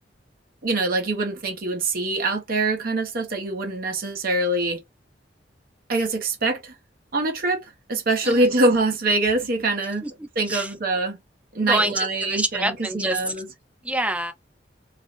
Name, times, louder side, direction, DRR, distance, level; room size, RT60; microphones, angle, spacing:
voice 1, 0.6-4.8 5.9-6.7 7.1-10.0 10.4-11.2 11.5-13.5, right 2 dB, 55° right, 0.8 m, -24 dB
voice 2, 10.0-10.7 11.6-13.2 13.8-14.3, right 1 dB, 5° right, 0.5 m, -27 dB
2.4 x 2.0 x 3.6 m
head